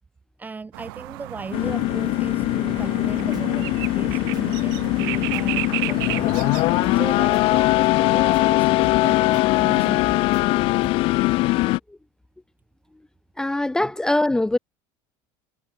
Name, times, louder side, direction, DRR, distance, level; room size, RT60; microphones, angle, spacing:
voice 1, 0.4-10.1 13.8-13.9, right 4 dB, 15° right, 4.2 m, -36 dB
sound 1, 0.7-7.8, right 24 dB, 85° right, 2.6 m, -33 dB
sound 2, 1.5-11.8, left 20 dB, 50° left, 0.5 m, -21 dB
sound 3, 3.1-11.0, right 10 dB, 35° right, 4.8 m, -44 dB
voice 2, 13.4-14.6, left 1 dB, 5° left, 0.7 m, -22 dB
cardioid pair, 145°, 12 cm